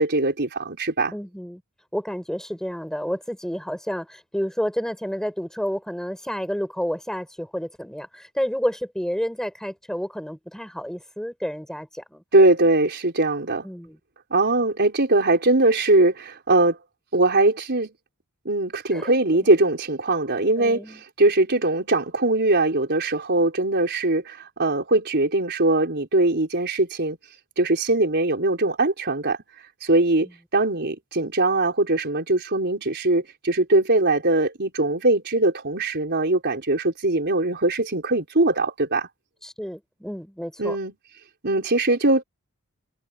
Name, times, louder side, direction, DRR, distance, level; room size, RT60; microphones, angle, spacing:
voice 1, 0.0-1.1 12.3-13.6 14.3-16.8 17.1-17.9 18.4-27.2 27.6-29.4 29.8-39.1 40.6-40.9 41.4-42.2, right 2 dB, 50° right, 4.5 m, -21 dB
voice 2, 1.1-1.6 1.9-12.2 13.6-14.0 18.9-19.2 20.6-21.0 30.2-30.3 39.4-40.8, equal, 5° left, 5.2 m, -30 dB
head